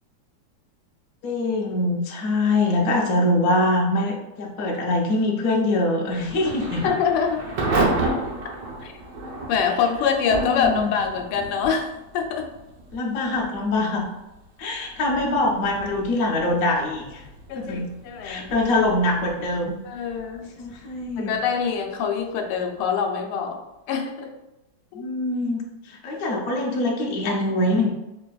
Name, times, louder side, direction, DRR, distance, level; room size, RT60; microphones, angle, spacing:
voice 1, 1.2-6.9 10.4-11.0 12.9-14.0 14.6-17.2 17.6-17.9 18.2-19.8 20.6-21.3 24.9-27.9, left 2 dB, 65° left, -1 dB, 0.8 m, -23 dB
Thunder / Rain, 6.1-22.8, right 2 dB, 65° right, 1.2 m, -33 dB
voice 2, 6.8-7.4 8.8-8.9 9.5-12.5 17.5-18.5 19.9-20.5 21.2-23.6 23.9-24.3 24.9-25.0, left 6 dB, 85° left, 4 dB, 1.5 m, -25 dB
3.9 x 3.3 x 2.3 m, 0.96 s
omnidirectional pair, 2.4 m